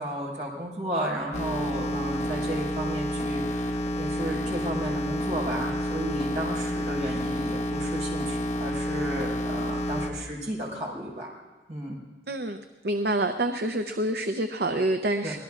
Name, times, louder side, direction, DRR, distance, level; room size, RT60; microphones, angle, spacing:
voice 1, 0.0-11.3 11.7-11.9 15.2-15.3, right 1 dB, 45° right, -2 dB, 5.0 m, -33 dB
sound 1, 1.3-10.1, equal, 40° left, 1.5 m, -29 dB
voice 2, 12.3-12.6 12.8-15.4, right 1 dB, 60° right, 7 dB, 0.7 m, -27 dB
25.0 x 19.0 x 2.5 m, 1.4 s
head